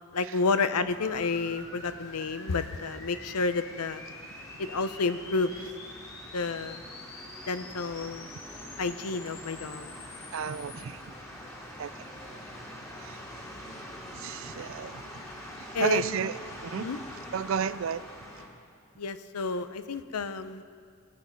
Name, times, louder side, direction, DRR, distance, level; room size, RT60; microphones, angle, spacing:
voice 1, 0.1-4.0 4.6-5.6 6.3-6.8 7.5-8.3 8.8-9.9 15.7-16.2 16.8-17.0 19.0-20.6, left 4 dB, 90° left, 12 dB, 0.7 m, -30 dB
sound 1, 0.7-18.5, equal, 15° left, 2.0 m, -45 dB
sound 2, 0.9-10.8, left 2 dB, 45° left, 2.0 m, -47 dB
voice 2, 10.3-11.0 11.8-11.9 13.0-13.2 14.2-15.0 15.8-16.9 17.3-18.0, right 7 dB, 60° right, 16 dB, 0.4 m, -32 dB
20.5 x 8.4 x 5.2 m, 2.2 s
head